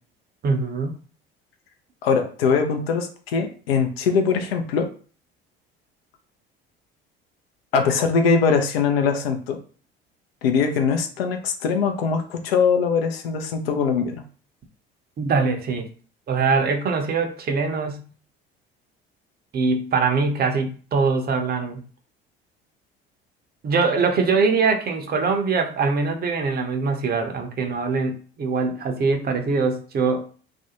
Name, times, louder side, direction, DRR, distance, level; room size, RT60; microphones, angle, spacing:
voice 1, 0.4-1.0 15.2-15.9 16.3-18.1 19.5-21.8 23.6-30.3, right 4 dB, 30° right, 5 dB, 0.6 m, -23 dB
voice 2, 2.0-4.8 7.7-9.6 10.4-14.2, left 5 dB, 75° left, 5 dB, 0.6 m, -22 dB
2.4 x 2.1 x 2.8 m, 0.41 s
figure-of-eight pair, 55°, 30 cm